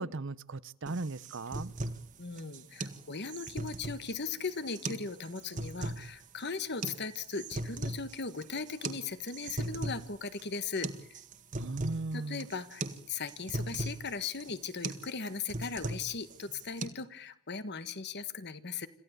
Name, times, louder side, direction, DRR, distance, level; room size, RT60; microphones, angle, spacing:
voice 1, 0.0-1.7 11.5-12.5, right 3 dB, 55° right, 18 dB, 0.8 m, -37 dB
sound 1, 0.9-16.9, right 2 dB, 35° right, 1.7 m, -40 dB
voice 2, 2.2-10.9 12.1-18.9, left 4 dB, 50° left, 13 dB, 1.5 m, -38 dB
27.0 x 15.0 x 8.1 m, 0.71 s
head